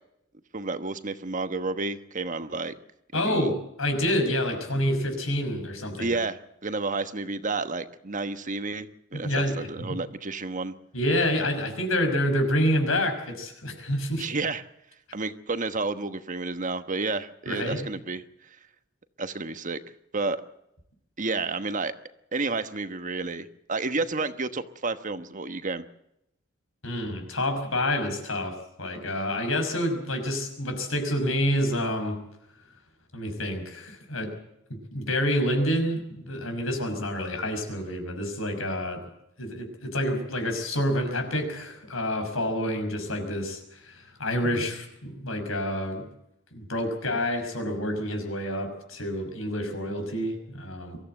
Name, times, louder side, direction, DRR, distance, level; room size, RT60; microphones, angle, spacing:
voice 1, 0.5-2.7 3.1-3.5 6.0-10.7 14.2-14.6 15.1-18.2 19.2-19.8 20.1-20.4 21.2-21.9 22.3-25.9, right 3 dB, 40° right, 10 dB, 1.2 m, -31 dB
voice 2, 3.1-6.2 9.1-10.0 10.9-14.3 17.5-17.9 26.8-32.2 33.1-34.3 34.7-39.0 39.4-46.1 46.5-51.0, left 1 dB, 80° left, 5 dB, 5.8 m, -28 dB
24.0 x 15.0 x 7.8 m, 0.81 s
head